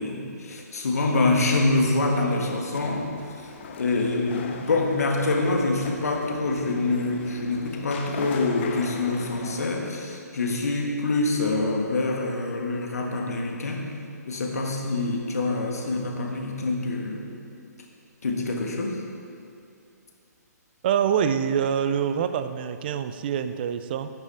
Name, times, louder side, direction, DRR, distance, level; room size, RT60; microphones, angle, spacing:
voice 1, 0.0-3.1 3.4-3.5 3.8-13.9 14.3-17.2 18.2-19.0, left 2 dB, 60° left, 1 dB, 1.6 m, -25 dB
sound 1, 2.7-9.7, left 5 dB, 40° left, 0.8 m, -39 dB
voice 2, 20.8-24.1, right 8 dB, 35° right, 11 dB, 0.5 m, -25 dB
12.0 x 8.1 x 4.1 m, 2.5 s
figure-of-eight pair, 130°, 9 cm